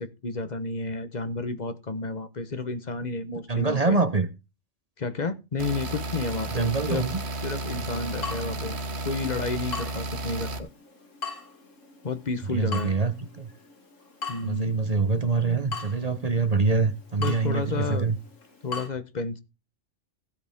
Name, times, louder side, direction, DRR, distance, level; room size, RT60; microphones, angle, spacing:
voice 1, 0.0-4.0 5.0-7.1 7.4-8.8 9.0-10.7 12.0-12.9 14.3-14.8 17.2-18.1 18.6-19.4, left 3 dB, 35° left, 1.2 m, -31 dB
voice 2, 3.5-4.3 6.5-7.2 12.5-13.5 14.4-18.2, right 4 dB, 35° right, 1.0 m, -25 dB
sound 1, 5.6-10.6, right 2 dB, 60° right, 1.4 m, -33 dB
Water tap faucet / Drip, 8.2-18.9, left 4 dB, 80° left, 2.8 m, -41 dB
16.5 x 8.0 x 3.6 m
omnidirectional pair, 1.3 m